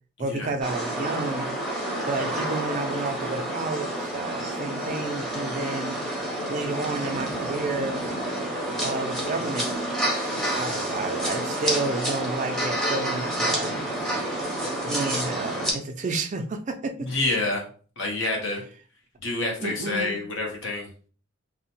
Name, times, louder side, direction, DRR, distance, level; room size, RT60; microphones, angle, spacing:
voice 1, 0.2-1.6 2.1-6.0 6.5-8.1 8.8-9.7 10.5-13.9 14.9-17.1 19.6-20.2, right 3 dB, 35° right, 5 dB, 0.3 m, -31 dB
sound 1, 0.6-15.7, right 1 dB, ahead, 0.6 m, -29 dB
voice 2, 17.0-17.6 18.0-18.6 19.2-20.9, left 2 dB, 65° left, 0 dB, 0.9 m, -27 dB
2.8 x 2.0 x 2.9 m, 0.41 s
head